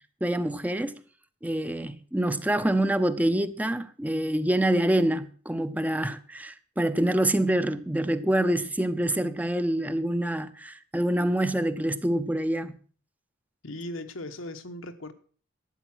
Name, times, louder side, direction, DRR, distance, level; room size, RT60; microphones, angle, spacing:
voice 1, 0.2-1.0 1.4-12.7, right 1 dB, 10° right, 0.6 m, -26 dB
voice 2, 13.6-15.1, left 1 dB, 90° left, 1.3 m, -38 dB
12.0 x 8.6 x 6.1 m
head